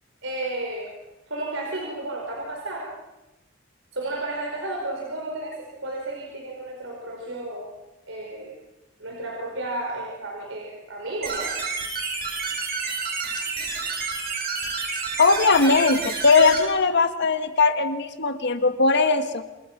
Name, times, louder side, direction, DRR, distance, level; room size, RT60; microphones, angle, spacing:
voice 1, 0.2-0.9 1.3-2.9 3.9-7.7 8.1-8.5 9.0-11.5, right 2 dB, 70° right, -1 dB, 5.1 m, -32 dB
sound 1, 11.2-16.6, right 4 dB, 50° right, 7.0 m, -29 dB
voice 2, 15.2-19.4, left 4 dB, 60° left, 9 dB, 1.6 m, -19 dB
28.5 x 28.5 x 6.0 m, 1.0 s
head